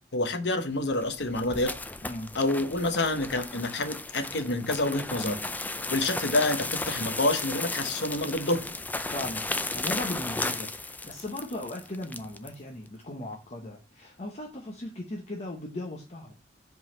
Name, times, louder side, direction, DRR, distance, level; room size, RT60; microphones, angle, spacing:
voice 1, 0.1-1.7 2.3-5.4 5.9-8.6, left 2 dB, 75° left, 1.0 m, -28 dB
sound 1, 0.8-12.5, left 2 dB, 10° left, 0.4 m, -35 dB
voice 2, 9.1-16.3, left 1 dB, 40° left, 0.8 m, -38 dB
5.1 x 3.9 x 5.1 m
head